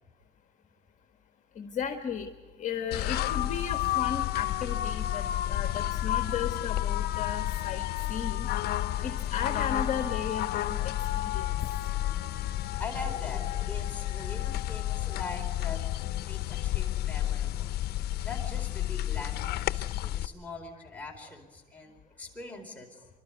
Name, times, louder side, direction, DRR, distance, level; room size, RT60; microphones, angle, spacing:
voice 1, 1.5-2.3 2.6-8.5 9.0-11.5, left 7 dB, 45° left, 4 dB, 1.6 m, -35 dB
sound 1, 2.9-20.3, left 13 dB, 70° left, 0.7 m, -31 dB
voice 2, 12.8-15.8 16.2-17.8 18.2-23.1, left 3 dB, 10° left, 0 dB, 4.6 m, -42 dB
26.5 x 12.5 x 9.5 m, 1.2 s
cardioid pair, 110°, 17 cm